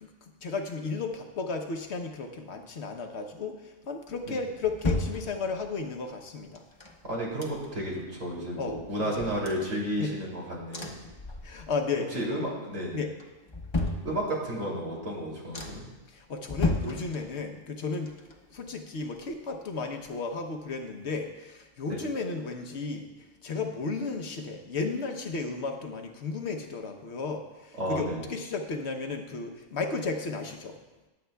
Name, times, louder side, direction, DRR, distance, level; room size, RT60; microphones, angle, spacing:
voice 1, 0.0-6.6 8.6-9.3 10.0-10.1 11.4-12.2 12.9-13.1 16.1-18.2 18.5-23.1 23.4-30.8, left 4 dB, 60° left, 5 dB, 1.1 m, -34 dB
sound 1, 4.1-5.8 6.5-8.0 8.3-8.4 8.7-10.3 10.7-11.9 12.2-12.7 13.2-14.6 15.1-15.2 15.5-16.0 16.4-17.6 17.9-19.7 20.1-20.2, left 2 dB, 25° left, 0.9 m, -35 dB
voice 2, 7.0-10.9 12.1-13.0 14.0-15.8 21.9-22.0 27.8-28.2, equal, 85° right, -4 dB, 3.3 m, -32 dB
21.5 x 7.7 x 2.3 m, 1.1 s
omnidirectional pair, 1.3 m